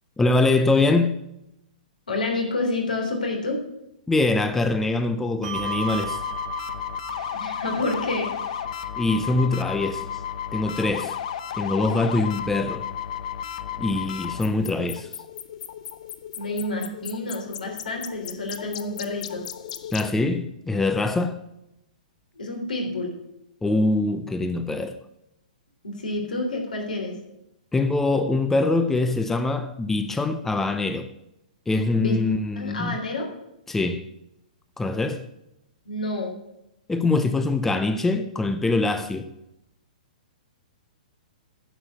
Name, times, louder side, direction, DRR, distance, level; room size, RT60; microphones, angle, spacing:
voice 1, 0.2-1.2 4.1-6.2 9.0-10.2 10.5-11.2 11.5-12.9 13.8-15.1 19.9-21.4 23.6-25.0 27.7-31.1 31.7-33.0 33.7-34.1 34.8-35.3 36.9-39.3, left 2 dB, 5° left, 0.6 m, -23 dB
voice 2, 2.1-3.6 7.3-8.3 16.4-19.5 22.3-23.1 25.8-27.2 31.9-32.2 32.5-33.3 35.8-36.3, left 2 dB, 75° left, 3.4 m, -28 dB
Bell, 5.4-12.3, right 8 dB, 55° right, 0.7 m, -39 dB
sound 1, 5.5-20.1, left 9 dB, 55° left, 0.7 m, -34 dB
10.0 x 7.2 x 6.8 m
figure-of-eight pair, 115°, 5 cm